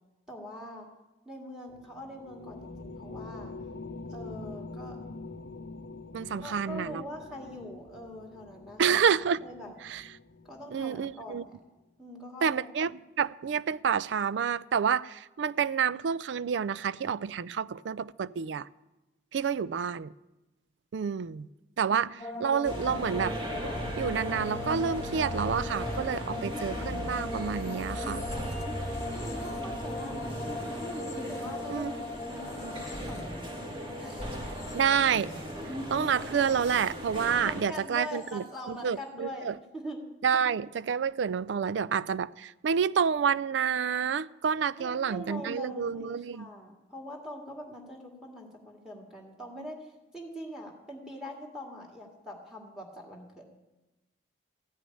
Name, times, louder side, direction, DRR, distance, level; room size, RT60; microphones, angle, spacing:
voice 1, 0.3-0.9 1.3-3.5 4.1-5.0 6.4-9.0 9.4-9.7 10.4-11.6 12.0-12.7 21.9-22.0 22.3-22.6 29.1-30.6 31.3-33.5 34.0-34.3 37.4-40.0 44.8-53.4, equal, 5° right, 2.0 m, -43 dB
sound 1, 1.7-11.4, left 3 dB, 75° left, 0.6 m, -45 dB
voice 2, 6.1-7.0 8.8-9.4 9.8-10.0 10.7-11.4 12.4-18.7 19.3-20.1 20.9-21.5 21.8-23.4 24.0-28.2 30.1-30.2 31.7-31.9 34.7-35.3 35.9-39.6 40.2-46.5, right 7 dB, 80° right, 0.4 m, -29 dB
sound 2, 22.2-37.4 37.7-38.3, left 1 dB, 15° left, 1.7 m, -40 dB
sound 3, 22.6-37.6, equal, 30° right, 1.8 m, -37 dB
14.5 x 6.2 x 9.8 m
head